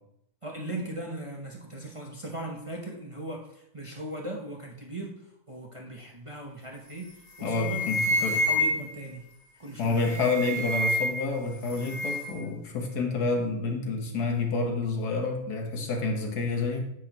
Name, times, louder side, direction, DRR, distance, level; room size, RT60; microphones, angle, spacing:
voice 1, 0.4-5.2 5.5-7.1 7.4-9.3 9.6-10.1, right 1 dB, 25° right, 0 dB, 0.8 m, -38 dB
sound 1, 6.9-7.1 7.4-9.1 9.9-11.4 11.6-12.4, left 1 dB, 15° left, 1.8 m, -28 dB
voice 2, 7.4-8.4 9.8-16.8, left 3 dB, 80° left, 3 dB, 1.8 m, -29 dB
9.6 x 8.1 x 3.0 m, 0.76 s
omnidirectional pair, 1.6 m